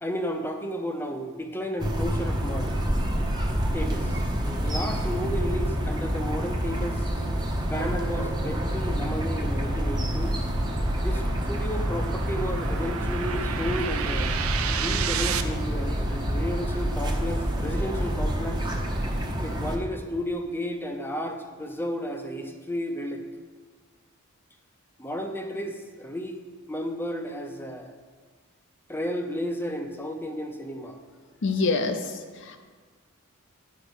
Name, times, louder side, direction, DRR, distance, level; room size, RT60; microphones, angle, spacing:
voice 1, 0.0-2.8 3.7-4.2 4.6-7.1 7.6-10.4 11.0-14.4 14.8-18.6 19.4-23.2 25.0-26.4 26.7-27.9 28.9-31.0, equal, 10° left, 5 dB, 0.6 m, -33 dB
sound 1, 1.8-19.8, equal, 20° right, 0.9 m, -27 dB
sound 2, 8.5-15.4, right 8 dB, 75° right, 0.6 m, -34 dB
voice 2, 31.4-32.6, left 3 dB, 55° left, 6 dB, 0.6 m, -26 dB
9.7 x 5.1 x 6.2 m, 1.5 s
head